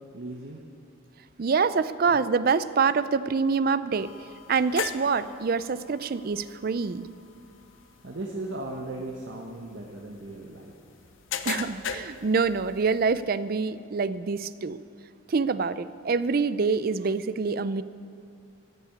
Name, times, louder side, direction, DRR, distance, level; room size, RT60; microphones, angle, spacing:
voice 1, 0.1-0.6 8.0-10.7, right 2 dB, 65° right, -1 dB, 1.2 m, -37 dB
voice 2, 1.4-4.1 4.5-7.1 11.4-14.8 15.3-17.8, right 5 dB, 45° right, 15 dB, 0.4 m, -26 dB
sound 1, 3.9-13.2, left 7 dB, 75° left, 0.8 m, -40 dB
14.5 x 7.0 x 9.6 m, 2.4 s
head